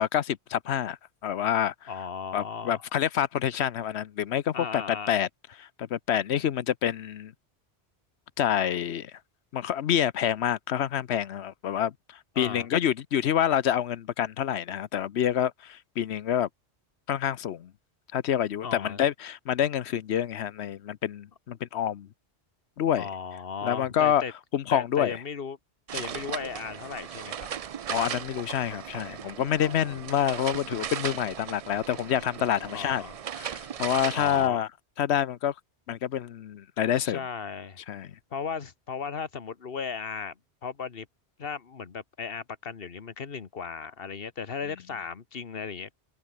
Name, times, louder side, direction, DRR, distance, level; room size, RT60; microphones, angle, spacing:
voice 1, 0.0-1.9 2.3-5.3 5.6-7.3 8.4-9.2 9.5-11.9 12.4-16.5 17.1-17.7 18.1-22.1 22.8-23.1 23.6-24.2 24.5-25.2 27.9-33.0 33.4-34.7 35.0-35.5 35.9-37.2 37.9-38.1, left 10 dB, 75° left, 1.0 m, -27 dB
voice 2, 1.9-2.8 4.5-5.1 12.3-12.7 18.6-19.0 23.0-24.3 24.7-25.6 25.9-27.5 29.6-30.0 32.6-33.2 34.1-34.6 37.0-37.8 38.3-41.1 41.4-45.9, left 6 dB, 60° left, 1.5 m, -36 dB
sound 1, 25.9-34.5, right 8 dB, 55° right, 0.4 m, -37 dB
omnidirectional pair, 1.1 m